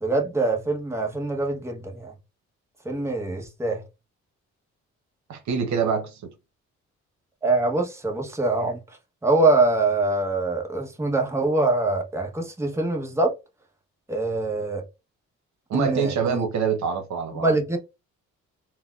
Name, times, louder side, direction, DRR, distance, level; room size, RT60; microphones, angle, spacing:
voice 1, 0.0-2.1 2.8-3.8 7.4-8.8 9.2-13.3 14.1-14.8 15.7-16.5 17.3-17.8, right 2 dB, 10° right, 1.0 m, -24 dB
voice 2, 5.3-6.3 15.7-17.6, right 6 dB, 70° right, 0.9 m, -25 dB
3.9 x 2.2 x 2.4 m
cardioid pair, 90°, 30 cm